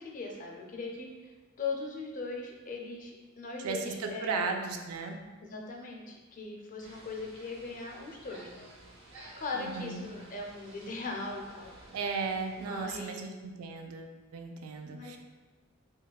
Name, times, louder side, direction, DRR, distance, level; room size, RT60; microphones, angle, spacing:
voice 1, 0.0-1.3 1.6-4.5 5.4-8.7 9.4-11.9 12.6-13.2 14.8-15.2, left 3 dB, 40° left, 0 dB, 0.4 m, -39 dB
voice 2, 3.6-5.2 9.5-10.1 11.9-15.2, right 4 dB, 90° right, 4 dB, 0.4 m, -36 dB
sound 1, 6.8-13.1, right 2 dB, 60° right, 0.7 m, -53 dB
4.6 x 2.2 x 2.3 m, 1.3 s
head